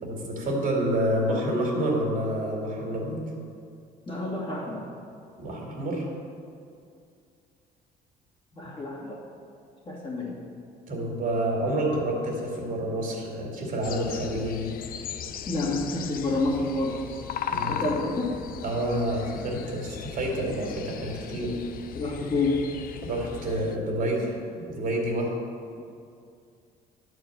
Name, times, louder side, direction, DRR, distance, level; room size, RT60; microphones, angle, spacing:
voice 1, 0.0-3.2 5.4-6.1 8.6-8.7 10.9-14.7 17.5-18.0 18.6-21.6 23.0-25.3, right 1 dB, 55° right, -1 dB, 2.6 m, -28 dB
voice 2, 4.1-4.9 8.5-9.2 9.8-10.4 15.4-17.2 17.7-18.4 21.9-22.7 25.8-25.9, left 2 dB, 30° left, -4 dB, 2.6 m, -29 dB
sound 1, 13.8-23.8, left 8 dB, 60° left, 0.6 m, -37 dB
11.0 x 4.7 x 7.8 m, 2.4 s
cardioid pair, 110°, 17 cm